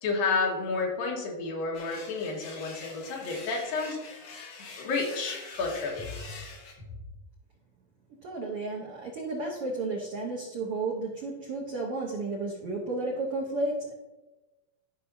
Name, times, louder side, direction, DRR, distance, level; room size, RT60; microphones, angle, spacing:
voice 1, 0.0-4.2 4.8-6.1, left 4 dB, 80° left, -1 dB, 3.2 m, -30 dB
sound 1, 1.7-6.7, left 4 dB, 60° left, 2.0 m, -45 dB
voice 2, 8.2-13.9, right 2 dB, 75° right, -2 dB, 1.3 m, -32 dB
13.0 x 5.7 x 2.7 m, 1.1 s
omnidirectional pair, 4.1 m